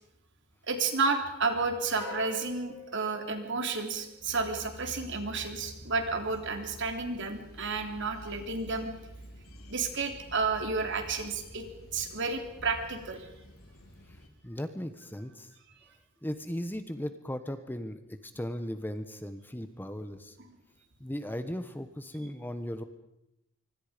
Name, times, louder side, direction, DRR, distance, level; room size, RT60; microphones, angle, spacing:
voice 1, 0.7-8.9 9.7-11.7 11.9-13.3, right 4 dB, 60° right, 5 dB, 3.4 m, -31 dB
sound 1, 2.0-4.5, left 1 dB, 65° left, 3.4 m, -47 dB
sound 2, 4.2-14.3, equal, 90° left, 3.8 m, -49 dB
voice 2, 14.1-15.5 16.2-20.4 21.0-22.8, equal, 10° left, 9 dB, 1.2 m, -37 dB
25.0 x 24.5 x 5.2 m, 0.88 s
head